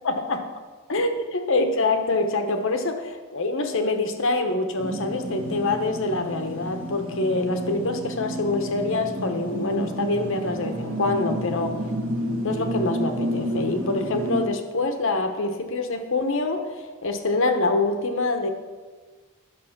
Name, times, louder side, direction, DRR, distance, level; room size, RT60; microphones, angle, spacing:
voice 1, 0.0-0.4 0.9-11.8 12.4-16.6 17.0-18.5, left 2 dB, 60° left, 6 dB, 0.9 m, -25 dB
sound 1, 4.8-14.5, right 1 dB, 70° right, 1.6 m, -30 dB
10.5 x 6.3 x 5.9 m, 1.4 s
head